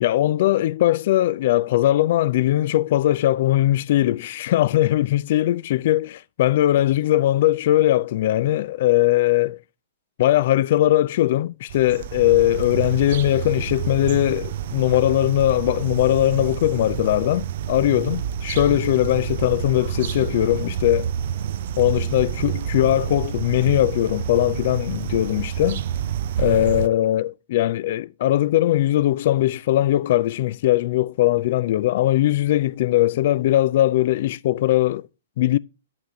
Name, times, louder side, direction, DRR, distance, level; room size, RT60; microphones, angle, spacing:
voice 1, 0.0-9.6 10.2-21.1 21.8-25.8 26.4-35.1 35.4-35.6, left 14 dB, 55° left, 0.3 m, -20 dB
sound 1, 11.7-26.9, right 9 dB, 55° right, 0.4 m, -28 dB
9.9 x 5.9 x 3.0 m
hypercardioid pair, 115°, 0 cm